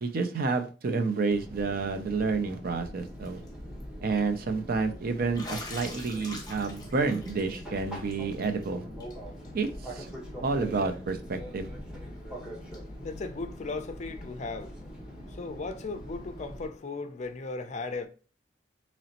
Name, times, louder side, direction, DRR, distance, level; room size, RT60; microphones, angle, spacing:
voice 1, 0.0-3.4 4.0-8.8 9.5-10.1 10.4-11.7, right 4 dB, 55° right, 0.5 m, -29 dB
Fixed-wing aircraft airplane, 1.3-16.7, equal, 5° right, 1.1 m, -43 dB
Bathtub (filling or washing), 3.1-3.5 3.8-3.9 5.3-8.7 9.0-9.1 9.4-9.5 10.9-11.0 12.7-12.8, left 2 dB, 20° left, 0.8 m, -44 dB
voice 2, 9.2-9.6 10.2-10.4 12.1-18.1, left 3 dB, 40° left, 0.4 m, -38 dB
3.9 x 3.0 x 2.8 m
head